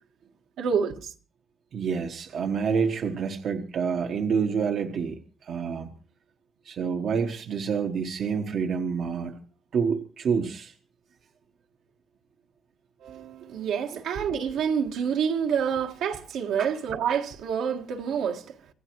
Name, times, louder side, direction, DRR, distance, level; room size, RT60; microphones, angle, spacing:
voice 1, 0.6-1.1 13.0-18.5, right 7 dB, 85° right, 1.7 m, -28 dB
voice 2, 1.7-5.9 6.7-9.4 9.7-10.7 16.6-16.7, right 6 dB, 65° right, 1.2 m, -28 dB
25.5 x 15.5 x 3.1 m
cardioid pair, 90°, 0 cm